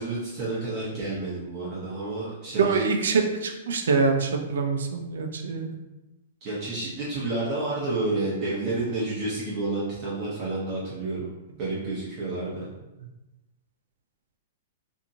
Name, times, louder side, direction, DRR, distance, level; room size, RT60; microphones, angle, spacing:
voice 1, 0.0-2.8 6.4-11.3 11.6-12.7, right 2 dB, 25° right, -8 dB, 0.6 m, -30 dB
voice 2, 2.6-5.7, right 4 dB, 80° right, 4 dB, 0.4 m, -25 dB
2.8 x 2.6 x 2.6 m, 1.0 s
hypercardioid pair, 175°, 0 cm